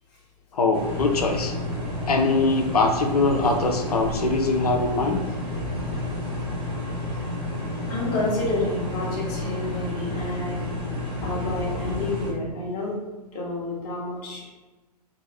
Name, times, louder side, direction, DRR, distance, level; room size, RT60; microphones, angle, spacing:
voice 1, 0.5-1.6 2.1-5.2, left 3 dB, 65° left, 4 dB, 0.4 m, -22 dB
sound 1, 0.7-12.3, left 1 dB, 25° right, 1.1 m, -30 dB
voice 2, 7.9-10.7 11.2-13.0 13.3-14.5, left 2 dB, 30° left, -4 dB, 0.9 m, -29 dB
2.7 x 2.6 x 2.9 m, 1.2 s
figure-of-eight pair, 110°, 21 cm